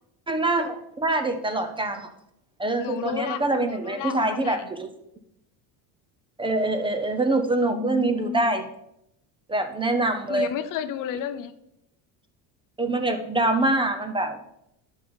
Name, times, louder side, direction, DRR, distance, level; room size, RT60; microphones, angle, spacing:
voice 1, 0.3-2.1 2.6-4.9 6.4-8.6 9.5-10.5 12.8-14.4, right 2 dB, 10° right, 7 dB, 0.7 m, -25 dB
voice 2, 2.8-4.6 7.7-8.4 10.3-11.5, left 9 dB, 50° left, 11 dB, 0.8 m, -32 dB
11.5 x 5.7 x 5.2 m, 0.81 s
cardioid pair, 140°, 40 cm